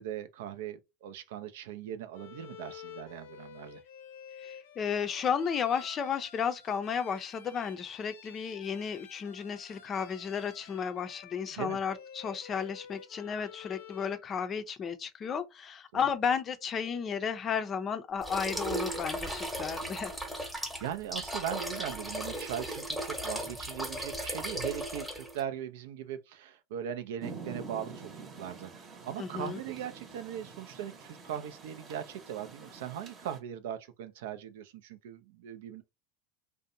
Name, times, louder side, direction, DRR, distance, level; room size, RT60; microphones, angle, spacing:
voice 1, 0.0-3.8 11.5-11.8 15.9-16.0 20.6-35.8, right 10 dB, 75° right, 0.4 m, -39 dB
Bowed string instrument, 2.1-14.3, left 8 dB, 80° left, 0.6 m, -50 dB
voice 2, 4.4-20.1 29.2-29.6, left 7 dB, 35° left, 0.5 m, -33 dB
sound 1, 18.2-25.4, right 1 dB, 5° right, 0.9 m, -36 dB
Rain, 27.2-33.4, right 4 dB, 35° right, 0.9 m, -47 dB
2.5 x 2.1 x 2.6 m
hypercardioid pair, 100°, 0 cm